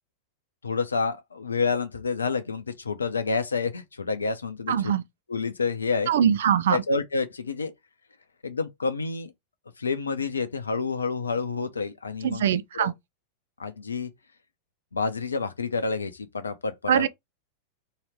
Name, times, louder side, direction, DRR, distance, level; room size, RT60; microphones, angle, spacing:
voice 1, 0.6-5.0 5.3-6.1 6.7-7.7 8.4-9.3 9.8-12.9 13.6-14.1 14.9-17.1, left 4 dB, 75° left, 0.7 m, -29 dB
voice 2, 4.7-5.0 6.1-6.8 12.2-12.9 16.9-17.1, right 9 dB, 60° right, 0.4 m, -22 dB
3.2 x 3.0 x 4.7 m
figure-of-eight pair, 90°, 0 cm